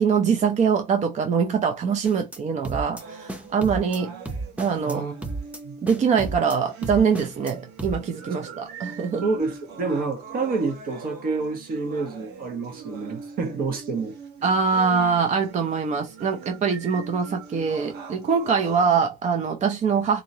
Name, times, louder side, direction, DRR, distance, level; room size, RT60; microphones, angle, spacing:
voice 1, 0.0-4.1 4.6-5.0 5.8-9.2 14.4-20.2, right 6 dB, 45° right, 0.6 m, -23 dB
sound 1, 2.0-2.4 2.6-3.0 3.3-4.0 4.3-5.0 5.2-5.6 5.9-6.6 6.8-7.5 7.8-8.0, right 2 dB, 10° right, 0.7 m, -32 dB
sound 2, 3.0-19.0, right 5 dB, 90° right, 1.0 m, -42 dB
voice 2, 9.2-14.1, right 4 dB, 60° right, 1.4 m, -28 dB
3.9 x 2.8 x 2.8 m
cardioid pair, 110°, 17 cm